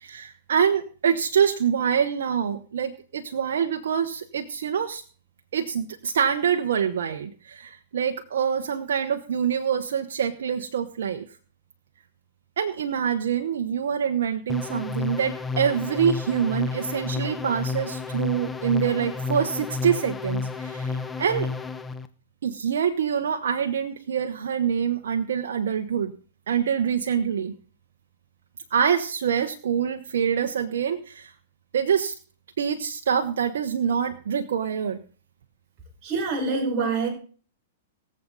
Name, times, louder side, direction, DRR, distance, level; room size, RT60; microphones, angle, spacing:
voice 1, 0.0-5.0 5.5-11.2 12.6-21.5 22.4-26.1 26.5-27.5 28.7-31.3 31.7-32.1 32.6-35.0, right 7 dB, 75° right, 4 dB, 1.1 m, -25 dB
sound 1, 14.5-22.1, left 4 dB, 10° left, 0.9 m, -31 dB
voice 2, 36.0-37.1, right 4 dB, 30° right, -1 dB, 5.3 m, -25 dB
23.0 x 7.7 x 4.1 m, 0.42 s
hypercardioid pair, 130°, 0 cm